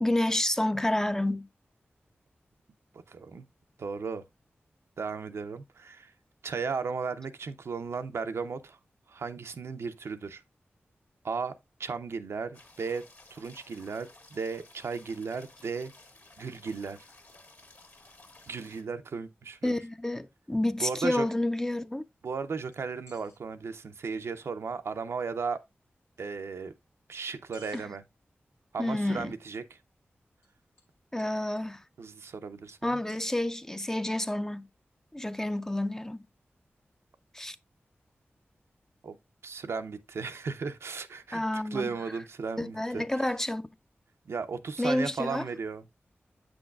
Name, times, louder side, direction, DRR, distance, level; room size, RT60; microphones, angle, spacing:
voice 1, 0.0-1.5 19.6-22.0 27.7-27.8 28.8-29.3 31.1-31.8 32.8-34.7 35.1-36.2 37.3-37.6 41.3-41.9 42.6-43.6 44.8-45.5, left 1 dB, 10° left, 0.4 m, -29 dB
voice 2, 3.1-3.4 3.8-4.2 5.0-6.1 6.4-8.8 9.1-10.4 11.2-15.9 16.4-17.0 18.5-19.8 20.8-21.2 22.2-25.6 26.2-26.7 27.1-28.0 28.7-29.8 32.0-33.0 39.0-39.2 39.4-43.0 44.3-45.8, right 5 dB, 80° right, 0.5 m, -35 dB
sound 1, 12.5-18.8, left 2 dB, 50° left, 1.6 m, -55 dB
sound 2, 22.7-23.4 26.2-26.3 27.5-27.9 30.4-30.5 30.8-30.9 31.2-31.8 33.1-33.7, equal, 85° left, 1.3 m, -57 dB
7.7 x 6.2 x 2.3 m
wide cardioid pair, 65°, 4 cm